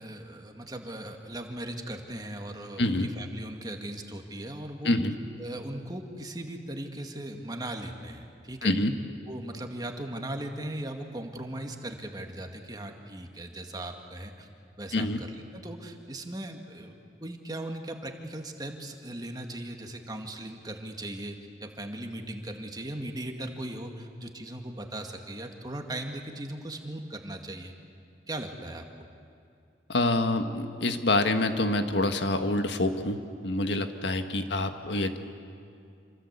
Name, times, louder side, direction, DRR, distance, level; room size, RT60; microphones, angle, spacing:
voice 1, 0.0-5.0 5.4-8.7 9.3-14.5 14.8-17.0 17.2-27.7 28.3-28.9, right 1 dB, 25° right, 4 dB, 2.1 m, -38 dB
voice 2, 2.8-3.1 4.8-5.1 8.6-8.9 14.9-15.2 29.9-35.2, left 2 dB, 80° left, 7 dB, 1.7 m, -26 dB
27.5 x 25.0 x 8.3 m, 2.5 s
head